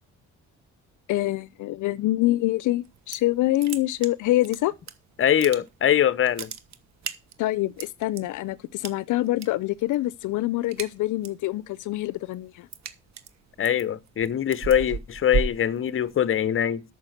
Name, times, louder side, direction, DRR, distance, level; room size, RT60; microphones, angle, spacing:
voice 1, 1.1-4.7 7.4-12.7, left 16 dB, 80° left, 0.5 m, -25 dB
sound 1, 2.9-3.3 3.6-4.9 5.2-5.9 6.2-8.2 8.8-9.5 9.8-10.1 10.4-11.5 11.9-16.4, right 6 dB, 65° right, 1.2 m, -34 dB
voice 2, 5.2-6.5 13.6-16.8, left 10 dB, 45° left, 0.8 m, -23 dB
8.8 x 6.6 x 6.5 m
cardioid pair, 90°, 30 cm